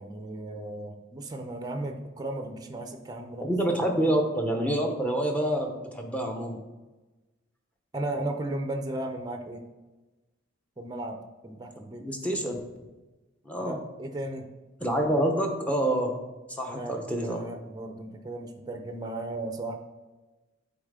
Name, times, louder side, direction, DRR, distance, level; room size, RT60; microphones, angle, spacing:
voice 1, 0.0-3.5 3.8-4.1 7.9-9.6 10.8-11.2 11.4-12.1 13.6-14.5 16.7-19.8, right 1 dB, 20° right, 5 dB, 0.5 m, -35 dB
voice 2, 3.4-6.6 12.0-12.6 13.4-13.8 14.8-16.1 16.6-17.4, right 1 dB, 5° left, 2 dB, 0.8 m, -27 dB
8.8 x 4.0 x 3.7 m, 1.1 s
head